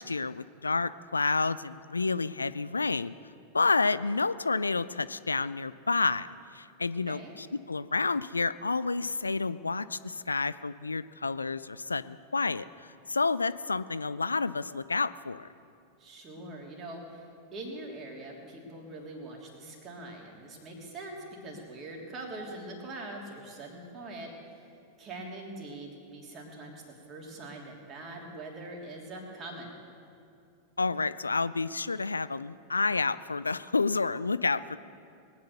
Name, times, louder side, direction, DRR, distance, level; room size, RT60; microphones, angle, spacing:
voice 1, 0.0-3.1 3.5-15.5 30.8-34.8, left 4 dB, 80° left, 16 dB, 0.3 m, -30 dB
voice 2, 7.1-7.4 16.0-24.7 25.0-29.7, right 2 dB, 30° right, -1 dB, 3.2 m, -43 dB
20.5 x 9.6 x 6.7 m, 2.5 s
figure-of-eight pair, 90°, 0 cm